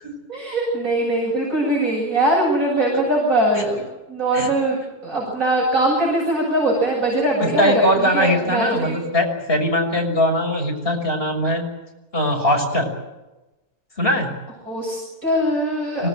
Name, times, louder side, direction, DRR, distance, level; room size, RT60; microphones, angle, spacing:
voice 1, 0.3-3.8 4.1-9.0 14.7-16.1, right 1 dB, 55° right, -4 dB, 8.6 m, -21 dB
voice 2, 7.6-11.6 12.1-12.9 14.0-14.3 16.0-16.1, equal, 35° left, 2 dB, 6.7 m, -20 dB
25.5 x 19.5 x 9.1 m, 1.0 s
omnidirectional pair, 1.7 m